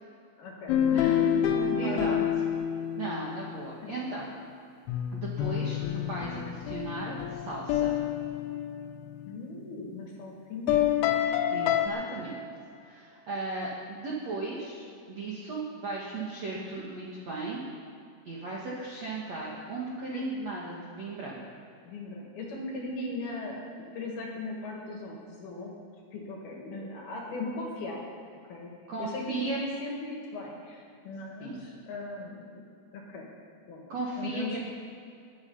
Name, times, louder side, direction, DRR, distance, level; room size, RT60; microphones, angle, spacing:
voice 1, 0.4-2.4 3.8-4.0 9.2-11.2 16.5-16.8 20.1-20.2 21.8-25.7 26.1-28.0 28.5-28.7 29.0-33.3 33.7-33.8 34.2-34.6, left 2 dB, 60° left, -1 dB, 3.3 m, -38 dB
sound 1, 0.7-3.5 4.9-9.4 10.7-11.9, left 10 dB, 75° left, 3.1 m, -28 dB
voice 2, 1.7-2.2 2.9-4.3 5.1-7.9 11.5-12.4 12.8-17.6 18.3-21.4 28.9-29.6 31.4-31.7 33.9-34.6, right 3 dB, 60° right, -4 dB, 1.8 m, -36 dB
22.0 x 9.8 x 5.6 m, 2.4 s
omnidirectional pair, 5.8 m